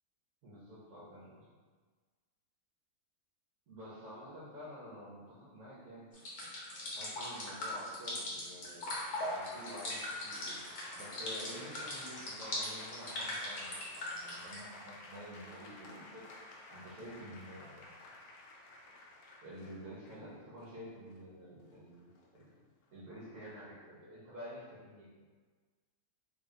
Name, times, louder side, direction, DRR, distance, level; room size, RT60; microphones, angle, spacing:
voice 1, 0.4-1.5 3.7-6.1 6.9-8.9 9.3-10.6 10.9-16.2 16.7-17.9 19.4-22.0 22.3-22.5 22.9-25.1, equal, 80° right, -8 dB, 1.5 m, -49 dB
sound 1, 6.1-14.6, left 1 dB, 60° left, 1.3 m, -40 dB
sound 2, 8.9-23.4, left 2 dB, 80° left, 1.1 m, -52 dB
3.4 x 2.5 x 4.2 m, 1.4 s
omnidirectional pair, 1.6 m